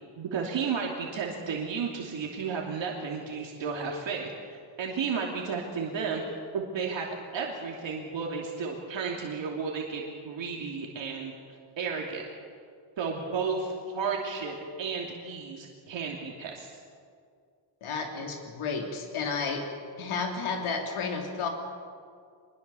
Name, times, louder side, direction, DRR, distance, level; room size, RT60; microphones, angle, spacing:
voice 1, 0.2-6.2 6.5-7.1 7.3-11.3 11.8-12.2 13.0-16.7, right 5 dB, 65° right, -1 dB, 2.9 m, -33 dB
voice 2, 17.8-19.6 20.0-21.5, left 5 dB, 85° left, 2 dB, 3.2 m, -32 dB
25.0 x 21.5 x 7.0 m, 2.2 s
wide cardioid pair, 170°, 48 cm